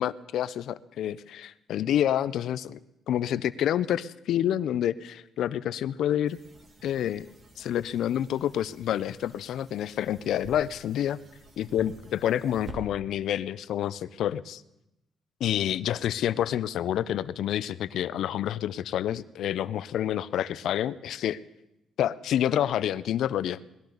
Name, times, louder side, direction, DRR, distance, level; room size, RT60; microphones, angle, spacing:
voice 1, 0.0-2.8 3.1-6.4 6.8-7.3 7.6-11.2 11.6-14.6 15.4-21.4 22.0-23.6, left 11 dB, 75° left, 18 dB, 0.4 m, -28 dB
sound 1, 6.3-12.8, right 1 dB, 45° right, 2.9 m, -49 dB
20.0 x 13.5 x 3.9 m, 0.89 s
cardioid pair, 90°, 0 cm